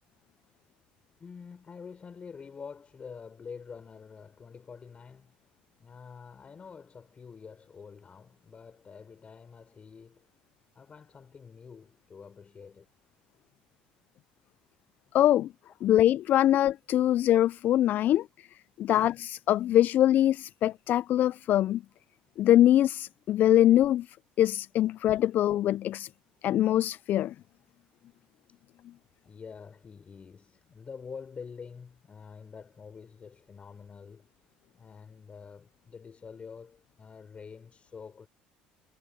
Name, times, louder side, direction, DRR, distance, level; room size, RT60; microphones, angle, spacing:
voice 1, 1.2-10.3 10.7-12.9 18.8-18.9 28.5-28.6 29.2-34.3 34.7-38.3, left 5 dB, 35° left, 6.4 m, -47 dB
voice 2, 15.1-15.5 15.8-18.5 18.8-21.8 22.4-26.1 26.4-27.3, left 12 dB, 55° left, 0.3 m, -23 dB
supercardioid pair, 75°, 4 cm